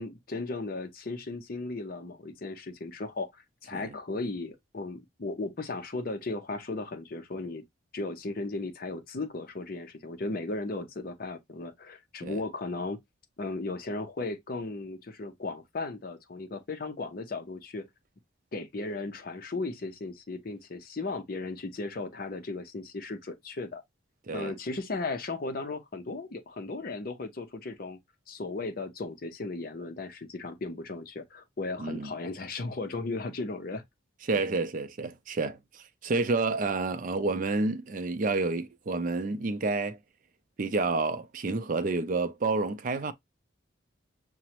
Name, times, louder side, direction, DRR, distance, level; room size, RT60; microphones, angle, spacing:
voice 1, 0.0-7.6 7.9-13.0 13.4-17.9 18.5-23.8 24.3-28.0 28.3-33.8 34.3-34.4, left 3 dB, 50° left, 0.6 m, -36 dB
voice 2, 31.8-32.1 34.3-40.0 40.6-43.1, right 3 dB, 45° right, 0.4 m, -29 dB
5.9 x 2.1 x 2.8 m
head